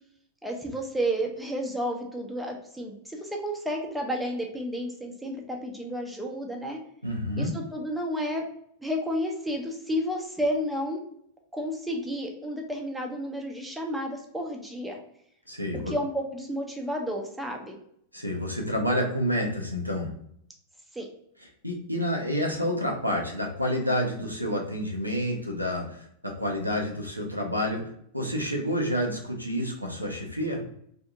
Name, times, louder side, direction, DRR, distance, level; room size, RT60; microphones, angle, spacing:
voice 1, 0.4-6.8 7.4-8.4 8.8-11.0 11.5-15.0 15.9-17.8 20.9-21.1, equal, 5° right, 1 dB, 0.5 m, -31 dB
voice 2, 7.0-7.5 15.5-15.9 18.1-20.1 21.6-27.8 28.1-30.6, equal, 90° right, 0 dB, 0.5 m, -29 dB
2.6 x 2.5 x 2.2 m, 0.68 s
figure-of-eight pair, 90°, 0 cm